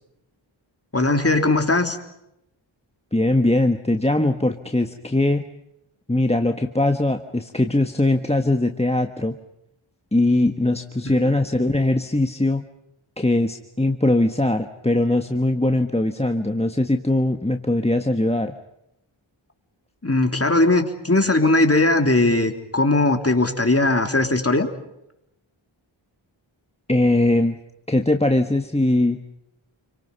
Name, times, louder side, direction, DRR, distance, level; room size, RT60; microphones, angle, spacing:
voice 1, 0.9-2.0 11.0-11.1 20.0-24.7, left 2 dB, 30° left, 5 dB, 3.3 m, -19 dB
voice 2, 3.1-5.4 6.1-9.4 10.1-12.6 13.2-18.5 26.9-27.6 27.9-29.2, left 1 dB, 15° left, 8 dB, 1.4 m, -21 dB
29.5 x 24.5 x 5.5 m, 0.84 s
wide cardioid pair, 70°, 48 cm